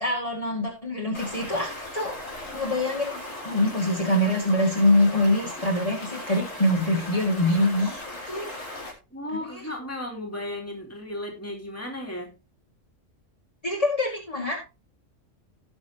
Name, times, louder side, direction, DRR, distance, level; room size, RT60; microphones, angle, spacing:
voice 1, 0.0-2.1 2.5-3.1 3.4-8.5 9.3-9.6 13.6-14.6, left 1 dB, 30° left, -4 dB, 2.3 m, -24 dB
Stream, 1.1-8.9, left 1 dB, 90° left, 3.8 m, -38 dB
voice 2, 9.1-12.3, left 1 dB, 10° left, -1 dB, 2.8 m, -35 dB
17.5 x 6.1 x 2.9 m, 0.27 s
omnidirectional pair, 1.3 m